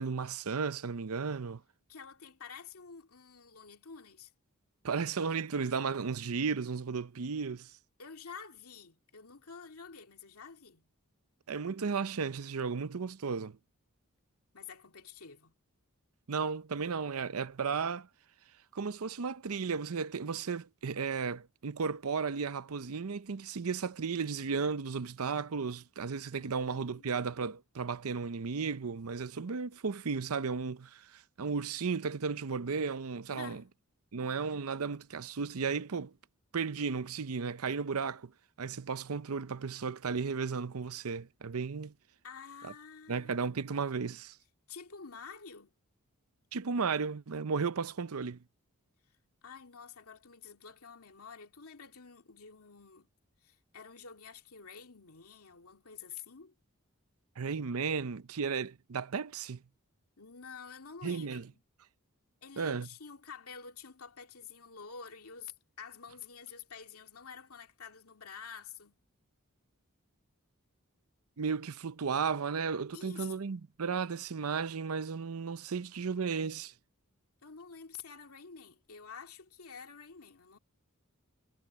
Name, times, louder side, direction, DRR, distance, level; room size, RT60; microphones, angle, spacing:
voice 1, 0.0-1.6 4.8-7.7 11.5-13.6 16.3-18.1 18.7-33.6 34.1-36.1 36.5-38.3 38.6-41.9 42.6-42.7 43.1-44.4 46.5-48.4 57.4-59.6 61.0-61.5 62.6-62.9 71.4-76.7, right 5 dB, 80° right, 0.7 m, -34 dB
voice 2, 1.9-4.3 8.0-10.9 14.5-15.5 26.4-27.1 33.3-33.7 42.2-43.5 44.7-45.7 49.4-53.1 53.4-56.5 60.2-61.6 62.4-69.0 72.9-73.5 77.4-80.6, left 6 dB, 85° left, 2.4 m, -49 dB
head